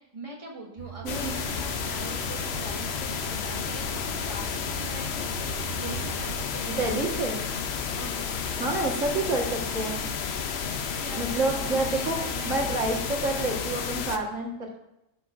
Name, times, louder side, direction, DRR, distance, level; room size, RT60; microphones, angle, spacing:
voice 1, 0.0-5.3 5.7-7.2 7.9-8.3 11.0-13.0, right 2 dB, 25° right, -3 dB, 1.7 m, -42 dB
sound 1, 0.8-6.4, right 9 dB, 55° right, 0.4 m, -41 dB
voice 2, 1.0-1.4 6.7-7.4 8.6-10.0 11.1-14.7, right 2 dB, 75° right, -1 dB, 1.9 m, -28 dB
sound 2, 1.1-14.2, left 6 dB, 60° left, 0.9 m, -31 dB
16.5 x 6.1 x 2.5 m, 0.89 s
omnidirectional pair, 1.3 m